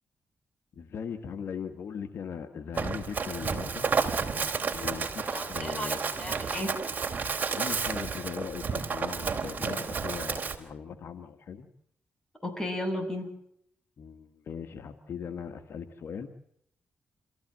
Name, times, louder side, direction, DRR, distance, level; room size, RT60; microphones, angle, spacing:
voice 1, 0.8-3.9 4.7-6.0 6.5-6.7 7.5-11.7 14.0-16.3, left 7 dB, 65° left, 8 dB, 1.8 m, -39 dB
Run, 2.7-10.6, right 5 dB, 40° right, 3.6 m, -31 dB
voice 2, 5.3-6.8 12.4-13.3, left 1 dB, 15° left, 6 dB, 6.9 m, -34 dB
27.5 x 15.5 x 7.7 m, 0.70 s
cardioid pair, 85°, 4 cm